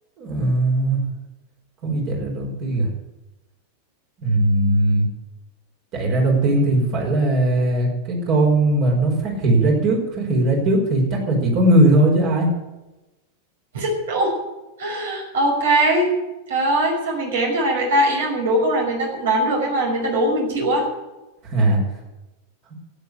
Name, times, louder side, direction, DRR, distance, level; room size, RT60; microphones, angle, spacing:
voice 1, 0.2-1.0 1.8-2.9 4.2-5.1 5.9-12.5 21.4-21.8, right 1 dB, 40° right, -1 dB, 5.5 m, -19 dB
voice 2, 13.7-14.4 14.8-16.1 16.5-20.9, right 1 dB, 60° right, 0 dB, 5.6 m, -21 dB
12.5 x 9.4 x 9.8 m, 1.0 s
figure-of-eight pair, 90°, 0 cm